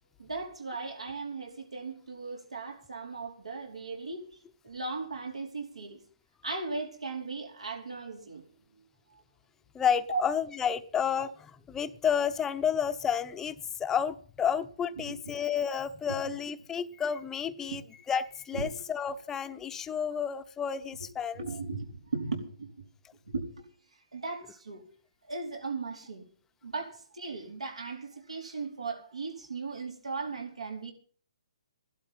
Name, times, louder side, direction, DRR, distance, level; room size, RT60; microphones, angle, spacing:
voice 1, 0.2-4.2 4.6-6.0 6.4-8.4 10.1-10.2 15.0-15.2 16.2-16.3 17.6-17.8 18.5-18.7 21.3-22.7 23.3-23.7 24.1-24.8 25.3-26.3 26.6-30.9, right 4 dB, 90° right, 4.6 m, -37 dB
voice 2, 9.7-17.8 18.1-21.4, left 7 dB, 15° left, 0.8 m, -31 dB
16.0 x 12.0 x 5.7 m
hypercardioid pair, 145°, 3 cm